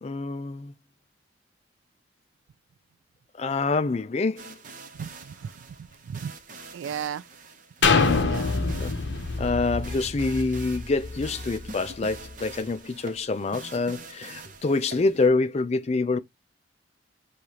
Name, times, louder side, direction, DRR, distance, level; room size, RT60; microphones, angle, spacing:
voice 1, 0.0-0.7 3.4-4.6 8.8-8.9 9.4-16.2, left 3 dB, 35° left, 0.4 m, -26 dB
sound 1, 4.4-15.3, right 3 dB, 40° right, 0.8 m, -45 dB
voice 2, 4.9-5.5 6.1-6.3 6.7-7.2 8.0-8.7, right 8 dB, 85° right, 0.3 m, -35 dB
sound 2, 7.8-11.6 12.1-12.2, left 4 dB, 65° left, 0.8 m, -25 dB
6.4 x 2.4 x 2.8 m
head